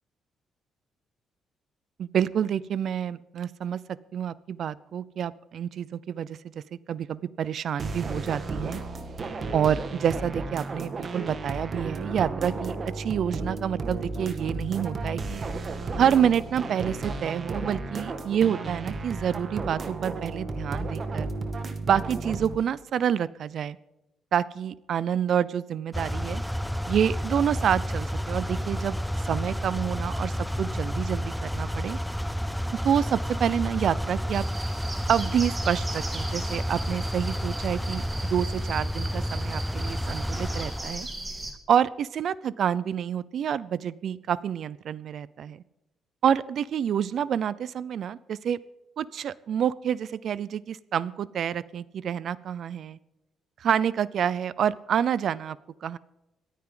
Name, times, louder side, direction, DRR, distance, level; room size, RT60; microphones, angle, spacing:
voice 1, 2.0-3.8 4.1-6.4 6.7-8.8 9.5-15.4 16.0-21.3 21.8-23.8 24.3-26.4 26.9-29.0 29.3-32.0 32.8-34.4 35.1-41.1 41.7-45.6 46.2-48.6 49.0-53.0 53.6-56.0, right 9 dB, 65° right, 19 dB, 0.6 m, -28 dB
sound 1, 7.8-22.6, right 3 dB, 40° right, 1.8 m, -33 dB
sound 2, 25.9-41.0, equal, ahead, 0.4 m, -30 dB
sound 3, 34.3-41.5, right 2 dB, 20° right, 3.5 m, -38 dB
26.5 x 9.4 x 3.9 m, 0.96 s
cardioid pair, 90°, 0 cm